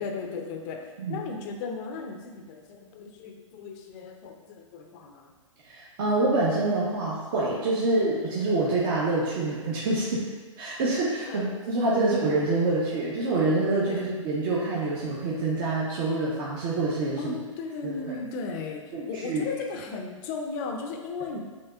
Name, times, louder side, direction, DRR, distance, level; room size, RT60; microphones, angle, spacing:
voice 1, 0.0-5.3 7.8-7.9 11.3-11.5 12.0-12.1 13.9-14.1 17.2-21.4, left 4 dB, 30° left, 3 dB, 0.6 m, -36 dB
voice 2, 5.7-10.2 10.6-17.3 17.8-18.1 18.9-19.5, right 2 dB, 40° right, -6 dB, 0.8 m, -26 dB
7.2 x 2.9 x 2.4 m, 1.4 s
hypercardioid pair, 125°, 17 cm